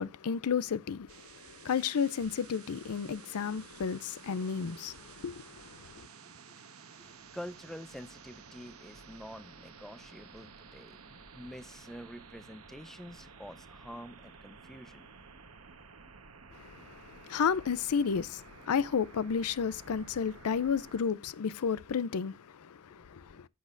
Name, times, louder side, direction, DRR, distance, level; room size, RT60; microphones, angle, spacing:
voice 1, 0.0-6.1 16.5-23.5, left 6 dB, 80° left, 0.5 m, -32 dB
sound 1, 1.1-21.0, right 5 dB, 75° right, 1.2 m, -53 dB
voice 2, 6.9-15.1, equal, ahead, 0.6 m, -47 dB
15.0 x 6.2 x 2.5 m
head